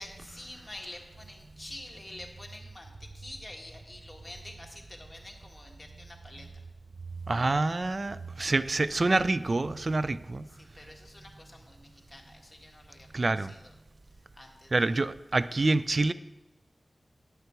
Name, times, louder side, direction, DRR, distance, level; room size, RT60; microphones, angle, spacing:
voice 1, 0.0-6.6 10.5-13.7 14.1-14.7, left 1 dB, 20° left, 0 dB, 1.7 m, -47 dB
voice 2, 7.3-10.5 13.1-13.5 14.7-16.1, right 2 dB, 55° right, 15 dB, 0.3 m, -27 dB
10.5 x 6.7 x 4.5 m, 1.1 s
cardioid pair, 45°, 0 cm